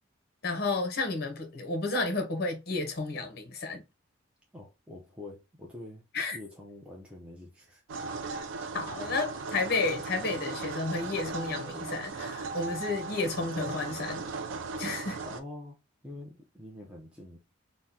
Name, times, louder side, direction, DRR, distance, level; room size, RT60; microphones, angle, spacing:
voice 1, 0.4-3.8 6.1-6.4 8.7-14.3 14.8-15.2, left 3 dB, 50° left, 0.7 m, -32 dB
voice 2, 4.5-6.0 6.3-7.8 15.2-15.8 16.0-17.4, left 2 dB, 5° right, 0.4 m, -45 dB
sound 1, 7.9-15.4, right 4 dB, 70° right, 0.4 m, -37 dB
3.5 x 2.1 x 2.7 m
head